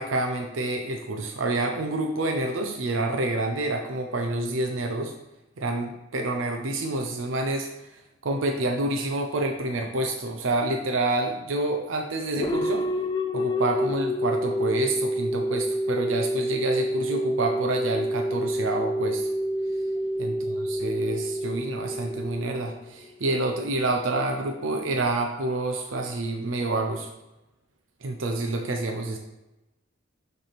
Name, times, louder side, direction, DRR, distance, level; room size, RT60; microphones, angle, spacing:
voice 1, 0.0-5.1 5.6-12.9 13.3-19.3 20.2-20.3 20.7-27.1 28.0-29.2, right 2 dB, 90° right, 3 dB, 0.6 m, -28 dB
sound 1, 12.4-23.1, equal, 20° left, 0.4 m, -28 dB
6.5 x 3.4 x 5.9 m, 1.0 s
head